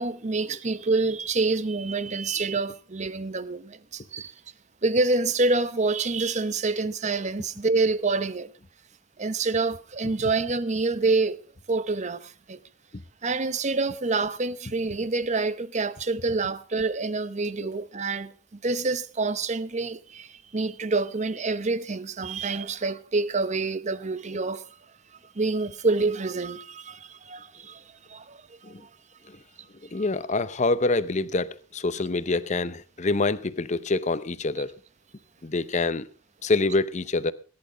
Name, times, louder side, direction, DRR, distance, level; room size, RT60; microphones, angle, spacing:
voice 1, 0.0-4.3 4.8-8.5 9.2-11.4 11.7-12.6 13.2-18.3 18.6-24.7 25.3-28.9 29.9-30.0, right 3 dB, 35° right, 0.8 m, -27 dB
voice 2, 29.9-34.7 35.4-36.1 36.4-37.3, left 3 dB, 35° left, 0.8 m, -26 dB
18.0 x 10.5 x 5.1 m
head